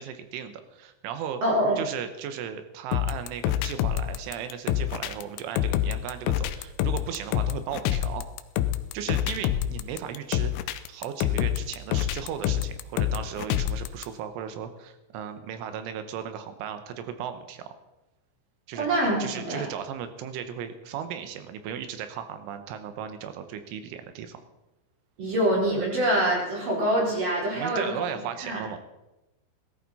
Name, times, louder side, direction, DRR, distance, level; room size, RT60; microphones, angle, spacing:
voice 1, 0.0-1.4 1.8-8.3 8.9-10.5 10.9-17.7 18.7-18.9 19.2-24.4 25.7-25.8 27.5-28.8, right 8 dB, 75° right, 9 dB, 3.3 m, -36 dB
voice 2, 1.4-1.8 18.8-19.6 25.2-28.1 28.4-28.6, right 1 dB, 40° right, -3 dB, 5.3 m, -25 dB
sound 1, 2.9-14.0, left 12 dB, 80° left, 2.7 m, -27 dB
17.5 x 13.5 x 4.1 m, 0.97 s
omnidirectional pair, 6.0 m